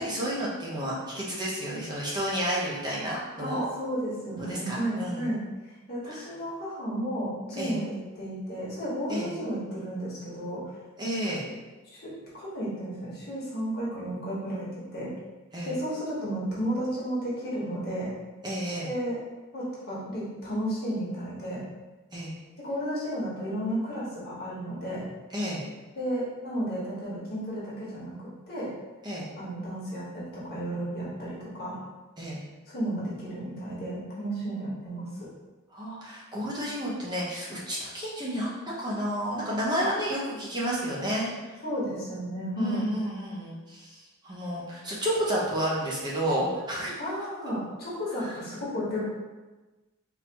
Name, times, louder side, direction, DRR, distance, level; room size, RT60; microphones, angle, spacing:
voice 1, 0.0-3.7 4.4-5.3 6.1-6.3 7.6-7.8 9.1-9.3 11.0-11.5 15.5-15.7 18.4-18.9 22.1-22.3 25.3-25.6 29.0-29.3 32.2-32.4 35.7-41.6 42.6-46.9 48.2-48.3, equal, 20° right, -6 dB, 0.8 m, -31 dB
voice 2, 3.4-10.6 11.8-15.1 15.6-18.1 18.8-19.2 19.5-21.6 22.6-25.1 26.0-28.1 28.5-28.7 29.4-31.8 32.7-35.3 41.6-42.8 47.0-49.1, equal, 45° left, -7 dB, 1.3 m, -33 dB
3.9 x 2.8 x 2.9 m, 1.2 s
head